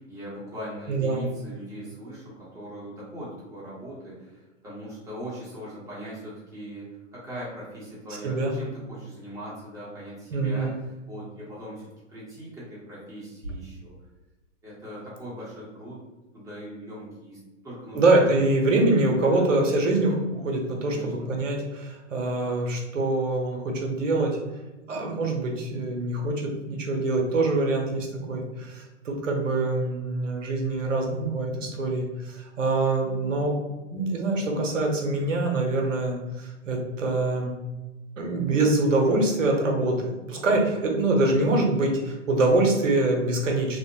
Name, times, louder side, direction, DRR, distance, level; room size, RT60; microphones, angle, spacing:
voice 1, 0.0-13.9 14.6-16.0 16.3-18.0 18.3-18.4 19.3-19.5 20.8-21.3 35.7-35.8, equal, 10° right, -8 dB, 1.0 m, -40 dB
voice 2, 0.9-1.3 8.2-8.5 10.3-10.8 17.9-24.4 24.9-33.6 33.9-37.5 38.2-43.8, right 2 dB, 85° right, 1 dB, 0.8 m, -24 dB
2.8 x 2.1 x 2.7 m, 1.1 s
hypercardioid pair, 125°, 37 cm